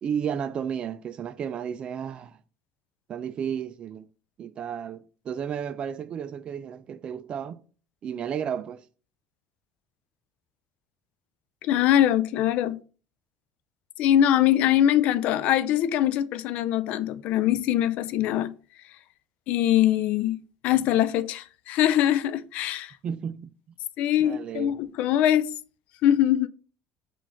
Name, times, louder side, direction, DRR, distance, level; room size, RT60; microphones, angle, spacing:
voice 1, 0.0-2.4 3.1-4.1 4.4-7.6 8.0-8.8 23.0-23.5 24.2-24.8, right 8 dB, 45° right, 0.4 m, -33 dB
voice 2, 11.6-12.8 14.0-18.5 19.5-20.4 20.6-22.9 24.0-25.5 26.0-26.5, left 11 dB, 65° left, 0.3 m, -22 dB
4.0 x 2.5 x 4.3 m
supercardioid pair, 100°, 3 cm